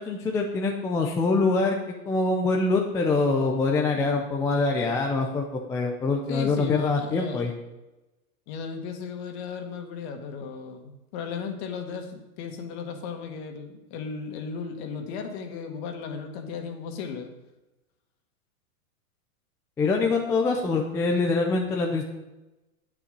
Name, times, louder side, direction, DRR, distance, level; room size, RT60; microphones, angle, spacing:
voice 1, 0.0-1.8 2.1-7.5 19.8-22.0, left 3 dB, 5° left, 2 dB, 0.4 m, -24 dB
voice 2, 6.3-7.4 8.5-17.3, left 5 dB, 45° left, 5 dB, 1.9 m, -35 dB
10.0 x 9.1 x 5.3 m, 1.0 s
hypercardioid pair, 140°, 44 cm